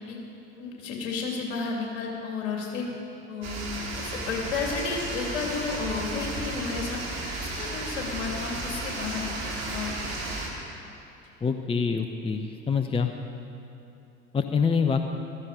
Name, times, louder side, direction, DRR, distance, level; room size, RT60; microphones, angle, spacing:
voice 1, 0.6-2.9 3.3-3.6 4.0-7.0 7.4-10.2, left 4 dB, 60° left, -1 dB, 3.1 m, -32 dB
sound 1, 3.4-10.5, right 2 dB, 45° right, 3.4 m, -34 dB
voice 2, 11.4-13.1 14.3-15.0, left 5 dB, 15° left, 6 dB, 0.7 m, -25 dB
15.5 x 13.5 x 5.0 m, 2.7 s
figure-of-eight pair, 65°, 36 cm